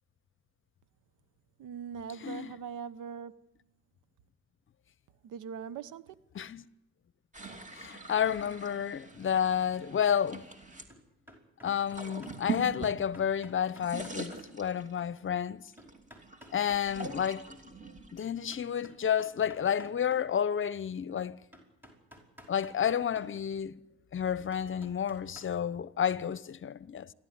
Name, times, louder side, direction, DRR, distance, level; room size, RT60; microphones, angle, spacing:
voice 1, 1.6-3.3 5.2-6.1, right 7 dB, 85° right, 1.0 m, -41 dB
voice 2, 6.3-6.7 7.7-10.4 11.6-15.7 16.5-17.6 18.1-21.4 22.5-23.8 24.1-27.1, left 8 dB, 40° left, 0.8 m, -31 dB
sound 1, 7.3-10.9 11.7-13.4 13.7-15.2 15.7-19.1, right 4 dB, 25° right, 2.8 m, -43 dB
sound 2, 10.9-11.0 11.3-14.5 15.0-15.1 15.8-17.1 18.5-20.2 20.9-21.0 21.5-23.3 24.5-25.4, equal, 5° right, 5.2 m, -52 dB
28.0 x 12.0 x 9.6 m
cardioid pair, 90°, 30 cm